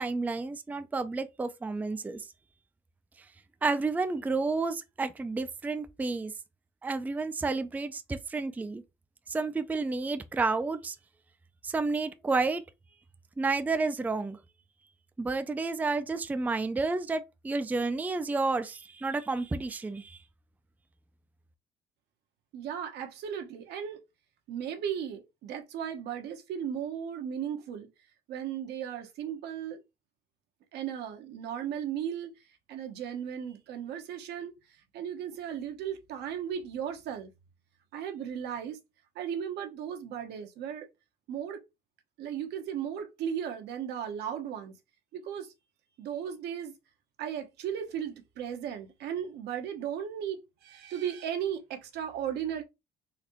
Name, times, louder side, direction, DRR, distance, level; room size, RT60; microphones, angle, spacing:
voice 1, 0.0-2.2 3.6-6.3 6.8-8.8 9.3-11.0 11.6-12.6 13.4-14.4 15.2-20.2, right 3 dB, 10° right, 0.4 m, -30 dB
voice 2, 22.5-24.0 24.5-27.9 28.3-29.8 30.7-32.3 32.7-34.5 34.9-37.3 37.9-38.8 39.1-40.9 41.3-41.6 42.2-44.7 45.1-45.5 46.0-46.7 47.2-52.6, right 9 dB, 75° right, 0.9 m, -36 dB
4.0 x 2.6 x 2.9 m
cardioid pair, 110°, 17 cm